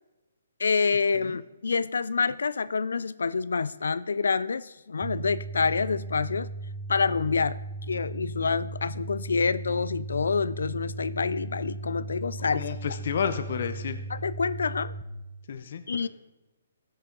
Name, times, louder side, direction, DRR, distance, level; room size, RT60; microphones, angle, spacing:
voice 1, 0.6-6.5 6.9-7.6 7.9-12.6 14.1-14.9 15.9-16.1, left 5 dB, 85° left, 17 dB, 0.3 m, -27 dB
sound 1, 5.0-15.0, right 3 dB, 5° right, 0.7 m, -37 dB
voice 2, 12.5-14.0 15.5-16.1, left 7 dB, 55° left, 10 dB, 0.7 m, -31 dB
15.5 x 6.5 x 3.8 m, 1.0 s
hypercardioid pair, 160°, 0 cm